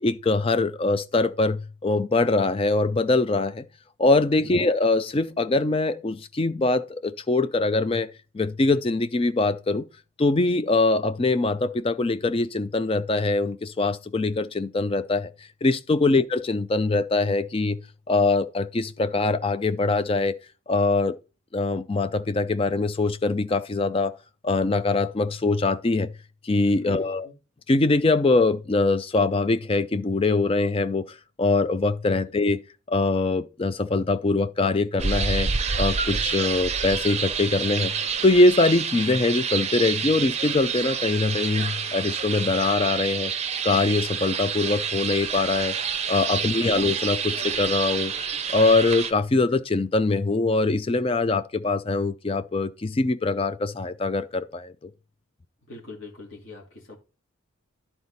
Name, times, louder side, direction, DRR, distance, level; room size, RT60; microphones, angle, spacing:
voice 1, 0.0-3.6 4.0-8.1 8.3-9.9 10.2-15.3 15.6-17.8 18.1-20.3 20.7-21.1 21.5-24.1 24.4-26.1 26.4-27.3 27.7-32.6 32.9-35.5 35.8-37.9 38.2-43.3 43.6-45.8 46.1-48.1 48.5-54.7, left 3 dB, 25° left, 0.4 m, -23 dB
voice 2, 26.9-27.3 32.2-32.3 46.3-46.8 55.7-57.0, left 2 dB, 60° left, 2.6 m, -43 dB
sound 1, 35.0-49.1, right 6 dB, 30° right, 0.6 m, -28 dB
11.0 x 4.2 x 4.1 m
head